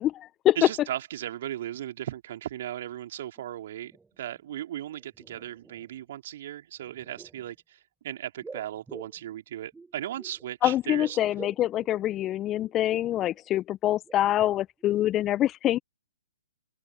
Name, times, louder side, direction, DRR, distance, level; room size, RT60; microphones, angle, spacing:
voice 1, 0.0-0.6 10.6-15.8, left 13 dB, 20° left, 1.3 m, -25 dB
voice 2, 0.6-3.9 4.2-7.8 8.0-11.2, right 12 dB, 50° right, 3.5 m, -36 dB
sound 1, 3.4-3.5 3.7-4.6 4.9-6.0 6.8-7.5 8.4-10.5 10.8-12.9 13.3-13.4 13.9-14.9 15.2-15.3, right 4 dB, 5° right, 5.9 m, -49 dB
open air
figure-of-eight pair, 125°, 0 cm